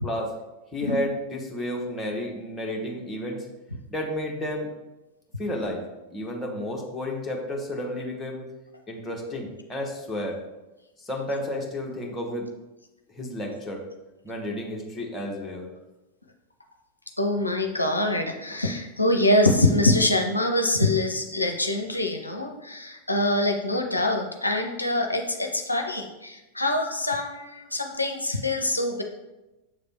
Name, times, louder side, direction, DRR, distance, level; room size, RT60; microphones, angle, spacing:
voice 1, 0.7-3.4 3.9-4.7 5.4-5.8 6.1-8.4 8.9-10.4 11.0-12.5 13.1-13.8 14.2-15.7, left 1 dB, 10° left, -1 dB, 1.2 m, -31 dB
voice 2, 17.2-29.0, left 1 dB, 85° left, 4 dB, 0.5 m, -24 dB
6.8 x 3.3 x 4.3 m, 1.0 s
figure-of-eight pair, 90°, 0 cm